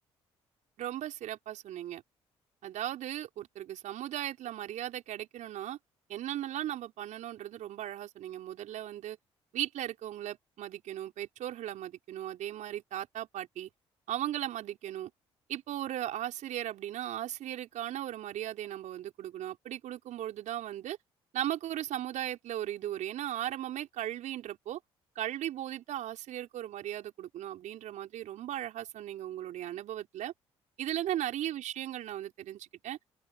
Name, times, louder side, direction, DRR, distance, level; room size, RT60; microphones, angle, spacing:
voice 1, 0.8-2.0 2.6-5.8 6.1-9.2 9.5-13.7 14.1-15.1 15.5-21.0 21.3-24.8 25.1-30.3 30.8-33.0, right 12 dB, 65° right, 4.9 m, -37 dB
open air
hypercardioid pair, 50°, 14 cm